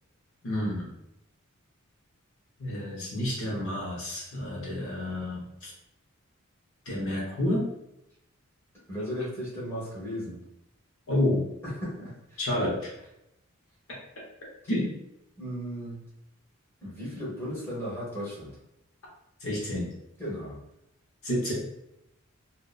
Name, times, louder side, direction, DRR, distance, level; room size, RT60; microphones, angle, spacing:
voice 1, 0.4-0.9 2.6-5.7 6.9-7.7 11.1-11.4 12.4-12.9 14.7-14.9 19.4-19.9 21.2-21.5, left 1 dB, 65° left, -4 dB, 0.7 m, -29 dB
voice 2, 8.9-10.4 11.6-12.4 15.4-16.0 16.8-18.6 20.2-20.6, equal, 10° left, -8 dB, 1.0 m, -35 dB
2.7 x 2.0 x 2.3 m, 0.83 s
head